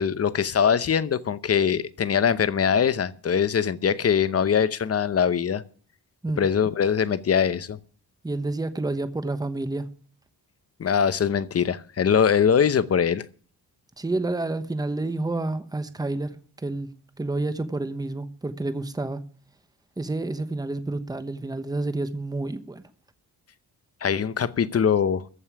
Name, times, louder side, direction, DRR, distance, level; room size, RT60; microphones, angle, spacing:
voice 1, 0.0-5.6 6.4-7.8 10.8-13.3 24.0-25.2, left 7 dB, 40° left, 0.9 m, -22 dB
voice 2, 8.2-9.9 14.0-16.4 16.6-16.9 17.2-19.2 20.0-22.9, right 2 dB, 10° right, 1.0 m, -29 dB
14.5 x 5.5 x 9.8 m
wide cardioid pair, 130°, 39 cm